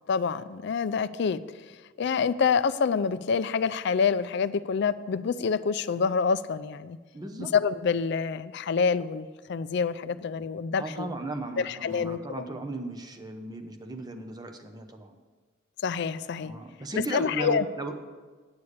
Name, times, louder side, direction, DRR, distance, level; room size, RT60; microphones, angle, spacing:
voice 1, 0.1-1.7 2.0-7.0 7.4-11.2 11.6-12.2 15.8-16.5 17.1-17.7, left 5 dB, 60° left, 15 dB, 0.4 m, -27 dB
voice 2, 7.1-7.5 10.7-15.2 16.4-17.9, right 2 dB, 20° right, 6 dB, 0.8 m, -36 dB
9.7 x 7.0 x 6.6 m, 1.4 s
head